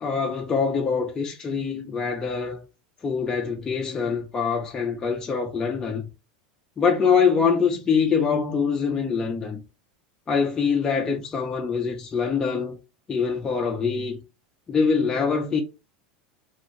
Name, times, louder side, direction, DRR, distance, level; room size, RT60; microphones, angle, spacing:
voice 1, 0.0-2.6 3.0-6.1 6.8-9.6 10.3-12.8 13.1-14.2 14.7-15.6, left 5 dB, 15° left, 0.4 m, -24 dB
2.5 x 2.4 x 3.0 m
supercardioid pair, 160°, 5 cm